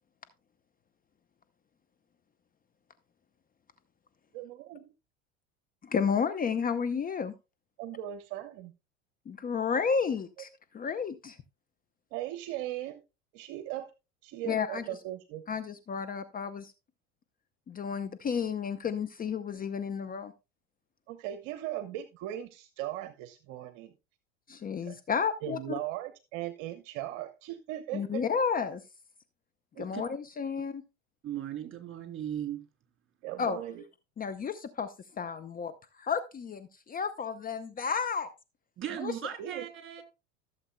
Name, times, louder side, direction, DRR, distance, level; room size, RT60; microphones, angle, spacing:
voice 1, 4.3-4.9 7.8-8.7 12.1-13.0 13.3-13.9 14.2-15.4 21.1-23.9 24.9-25.0 25.4-28.2 29.8-29.9 33.2-33.8 39.1-39.6, right 13 dB, 50° right, 11 dB, 0.9 m, -38 dB
voice 2, 5.8-7.3 9.3-10.5 10.7-11.4 14.4-14.8 15.5-16.7 17.7-20.3 24.5-25.8 27.9-28.8 29.8-30.8 33.4-33.6 34.2-38.3 39.0-39.1, left 6 dB, 25° left, 10 dB, 0.7 m, -32 dB
voice 3, 31.2-32.6 38.8-40.0, right 10 dB, 35° right, 5 dB, 2.9 m, -37 dB
15.0 x 7.3 x 2.2 m, 0.28 s
hypercardioid pair, 80°, 37 cm